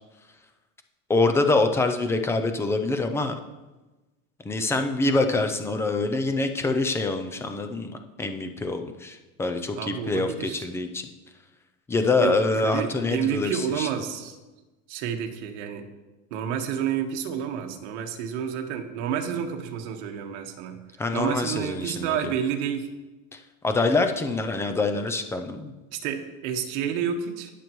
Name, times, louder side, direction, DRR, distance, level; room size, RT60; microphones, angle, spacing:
voice 1, 1.1-3.4 4.4-11.1 11.9-13.9 21.0-22.3 23.3-25.7, left 3 dB, 10° left, 7 dB, 0.3 m, -25 dB
voice 2, 9.8-10.7 12.2-12.4 12.6-14.4 14.9-15.9 16.3-20.8 21.1-22.9 25.9-27.5, right 8 dB, 75° right, 4 dB, 1.4 m, -29 dB
19.0 x 6.6 x 3.0 m, 1.1 s
cardioid pair, 160°, 35 cm